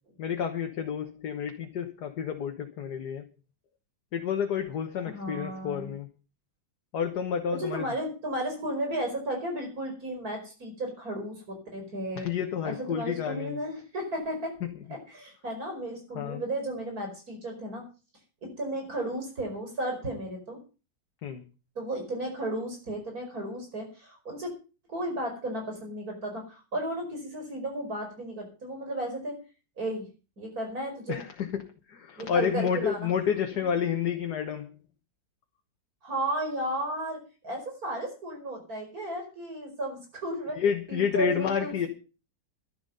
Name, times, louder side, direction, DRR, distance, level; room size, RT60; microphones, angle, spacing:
voice 1, 0.2-3.3 4.1-6.1 6.9-7.8 12.2-13.6 16.2-16.4 21.2-21.4 31.1-31.6 31.9-34.8 40.6-41.9, left 7 dB, 65° left, 5 dB, 1.8 m, -30 dB
voice 2, 5.0-5.9 7.5-12.3 12.6-14.5 14.9-17.9 18.4-20.6 21.8-24.5 24.9-29.4 29.8-30.1 30.4-31.2 32.2-33.1 33.5-33.7 36.0-41.9, right 1 dB, 55° right, 3 dB, 5.4 m, -34 dB
12.0 x 11.0 x 5.4 m, 0.34 s
omnidirectional pair, 1.9 m